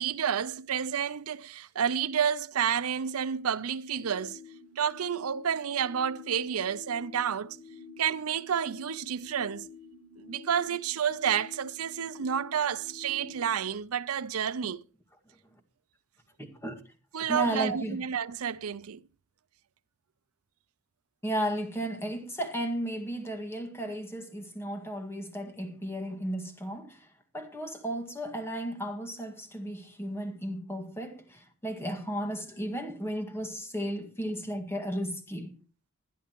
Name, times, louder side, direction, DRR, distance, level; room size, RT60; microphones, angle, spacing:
voice 1, 0.0-4.4 4.8-7.6 8.0-9.7 10.2-14.8 17.1-19.0, right 8 dB, 85° right, 0.5 m, -30 dB
sound 1, 4.0-13.6, left 4 dB, 55° left, 4.0 m, -50 dB
voice 2, 16.4-16.8 17.3-18.0 21.2-27.1 27.3-35.5, right 1 dB, 10° left, 1.9 m, -34 dB
20.5 x 11.0 x 3.0 m
head